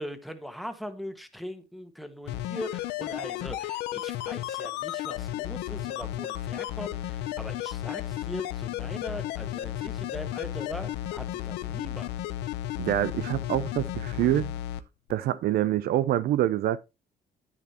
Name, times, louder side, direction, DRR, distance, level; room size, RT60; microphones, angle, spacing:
voice 1, 0.0-12.1, equal, ahead, 1.3 m, -40 dB
sound 1, 2.3-14.8 15.1-15.2, left 13 dB, 85° left, 0.7 m, -33 dB
voice 2, 12.8-14.5 15.1-16.9, right 13 dB, 65° right, 0.5 m, -26 dB
10.0 x 8.8 x 2.9 m
cardioid pair, 110°, 17 cm